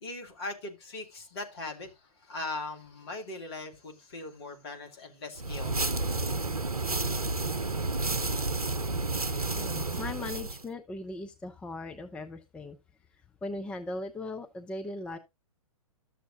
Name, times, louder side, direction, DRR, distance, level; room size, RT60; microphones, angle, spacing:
voice 1, 0.0-5.7, left 2 dB, 45° left, 2.2 m, -40 dB
sound 1, 5.4-10.6, right 3 dB, 85° right, 0.7 m, -31 dB
voice 2, 9.5-12.8 13.4-15.2, left 2 dB, 5° left, 0.4 m, -38 dB
12.5 x 7.0 x 2.5 m
figure-of-eight pair, 120°, 18 cm